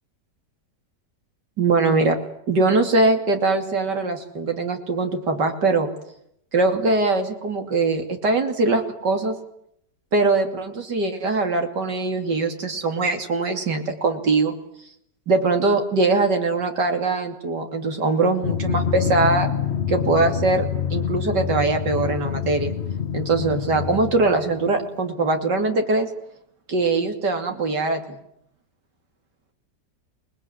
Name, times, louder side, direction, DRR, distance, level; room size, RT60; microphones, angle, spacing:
voice 1, 1.6-2.2 2.5-5.9 6.5-9.4 10.1-14.5 15.3-19.5 19.9-22.7 23.1-26.1 26.7-28.2, right 3 dB, 85° right, 4 dB, 3.3 m, -22 dB
Drum, 18.4-24.9, left 8 dB, 40° left, 1.4 m, -26 dB
28.0 x 21.0 x 9.8 m, 0.74 s
omnidirectional pair, 1.8 m